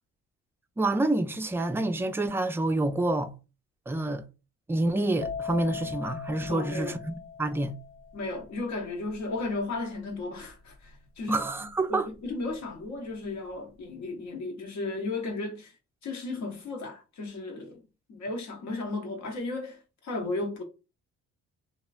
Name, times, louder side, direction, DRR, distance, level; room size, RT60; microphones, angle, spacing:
voice 1, 0.8-3.3 3.9-4.2 4.7-7.7 11.3-12.1, right 2 dB, 10° right, 0.3 m, -28 dB
sound 1, 5.2-12.8 13.1-13.5, left 6 dB, 45° left, 0.6 m, -41 dB
voice 2, 6.5-7.0 8.1-15.7 16.0-17.8 18.1-20.6, left 3 dB, 65° left, 1.0 m, -35 dB
3.0 x 2.3 x 2.4 m
cardioid pair, 90°, 30 cm